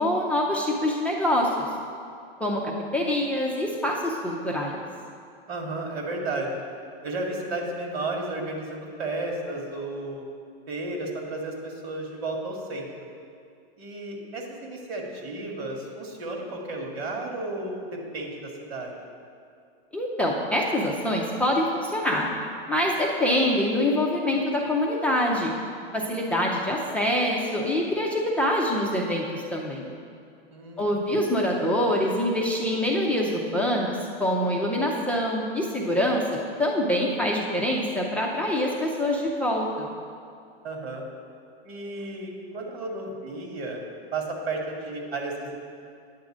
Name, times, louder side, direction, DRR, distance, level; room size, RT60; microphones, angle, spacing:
voice 1, 0.0-1.5 2.4-4.8 19.9-22.3 22.7-25.5 25.9-29.9 30.8-39.9, left 1 dB, 5° left, -2 dB, 0.4 m, -25 dB
voice 2, 5.5-6.6 7.0-10.2 10.7-12.9 13.8-18.9 30.5-31.2 40.6-41.1 41.6-43.8 44.1-45.6, right 2 dB, 90° right, 1 dB, 1.9 m, -33 dB
9.5 x 3.8 x 7.2 m, 2.4 s
supercardioid pair, 145°, 31 cm